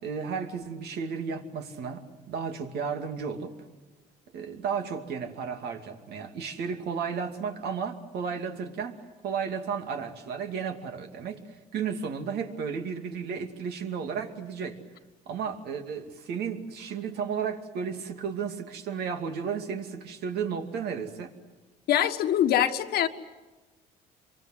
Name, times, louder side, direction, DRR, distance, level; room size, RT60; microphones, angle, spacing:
voice 1, 0.0-3.6 4.3-9.0 9.2-14.8 15.3-21.3, right 6 dB, 75° right, 5 dB, 2.6 m, -33 dB
voice 2, 21.9-23.1, left 10 dB, 70° left, 8 dB, 1.6 m, -23 dB
26.0 x 24.0 x 8.0 m, 1.2 s
cardioid pair, 110°, 17 cm